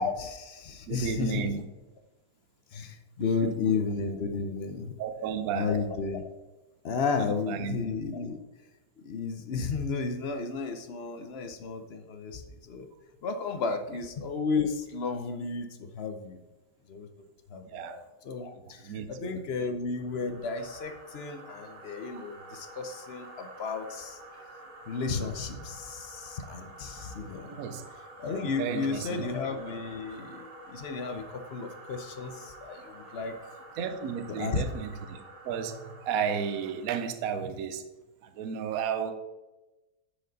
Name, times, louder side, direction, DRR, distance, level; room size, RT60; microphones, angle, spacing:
voice 1, 0.0-1.5 2.7-4.9 5.5-6.3 6.8-8.4 9.0-12.9 13.2-16.4 16.9-17.1 17.5-24.4 24.9-27.6 28.2-33.4 34.3-34.6, left 4 dB, 55° left, 7 dB, 0.7 m, -33 dB
voice 2, 0.9-1.6 3.4-3.8 5.0-5.7 7.2-7.8 17.7-18.0 18.8-19.4 27.6-27.8 28.6-29.3 33.8-37.9 38.2-39.1, right 7 dB, 65° right, 9 dB, 1.1 m, -33 dB
sound 1, 20.0-37.0, right 2 dB, 45° right, 1.7 m, -49 dB
10.0 x 5.1 x 4.0 m, 1.1 s
omnidirectional pair, 1.8 m